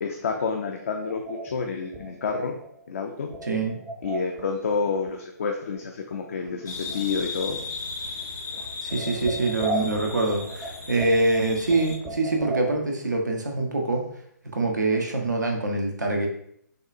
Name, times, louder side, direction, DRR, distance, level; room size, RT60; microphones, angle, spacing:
voice 1, 0.0-2.5 2.9-3.3 4.0-7.6, left 5 dB, 50° left, 3 dB, 0.5 m, -29 dB
sound 1, 1.0-4.5 4.7-5.5 5.7-5.8 6.1-7.2 7.5-7.9 8.2-8.3 8.5-12.8, right 2 dB, 10° right, 0.4 m, -36 dB
voice 2, 3.4-3.8 8.8-14.0 14.5-16.3, right 2 dB, 75° right, 1 dB, 0.9 m, -25 dB
sound 2, 6.7-12.0, left 4 dB, 75° left, 1.1 m, -36 dB
6.6 x 2.3 x 2.5 m, 0.69 s
figure-of-eight pair, 135°, 10 cm